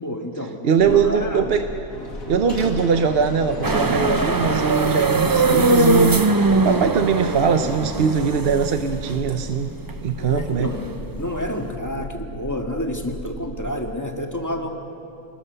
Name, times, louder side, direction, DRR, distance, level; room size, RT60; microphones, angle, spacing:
voice 1, 0.0-0.6 0.9-1.5 10.2-10.8 11.2-14.7, left 1 dB, 15° left, 3 dB, 1.9 m, -29 dB
voice 2, 0.6-1.7 2.3-6.3 6.6-9.7 10.0-10.7, right 6 dB, 50° right, 7 dB, 0.9 m, -21 dB
sound 1, 0.8-13.8, equal, 60° left, 4.6 m, -37 dB
sound 2, 1.9-7.7, left 1 dB, 75° left, 3.1 m, -37 dB
sound 3, 3.6-11.7, right 2 dB, 25° right, 0.5 m, -21 dB
27.0 x 20.5 x 6.8 m, 2.8 s
omnidirectional pair, 1.4 m